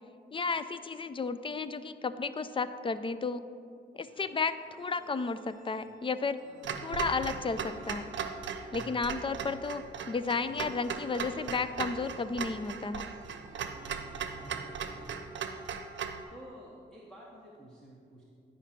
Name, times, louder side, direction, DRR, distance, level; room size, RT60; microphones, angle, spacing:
voice 1, 0.3-3.4 3.9-6.4 6.8-8.1 8.7-13.0, left 4 dB, 25° left, 12 dB, 0.4 m, -33 dB
sound 1, 4.0-15.3, right 4 dB, 40° right, 0.8 m, -55 dB
Clock, 6.6-16.2, right 6 dB, 75° right, 0.7 m, -38 dB
voice 2, 8.7-9.1 14.2-15.7 16.3-18.3, equal, 5° left, -4 dB, 1.1 m, -51 dB
10.5 x 5.1 x 5.8 m, 2.3 s
cardioid pair, 105°, 19 cm